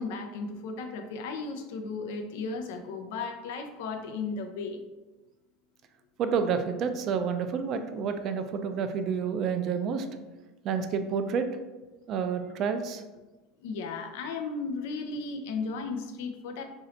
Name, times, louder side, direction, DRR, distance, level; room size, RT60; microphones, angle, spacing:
voice 1, 0.0-4.8 13.6-16.6, left 4 dB, 75° left, 6 dB, 0.5 m, -35 dB
voice 2, 6.2-10.1 10.6-11.5 12.1-13.0, right 6 dB, 45° right, 8 dB, 0.4 m, -29 dB
3.2 x 2.6 x 3.9 m, 1.1 s
supercardioid pair, 115°, 0 cm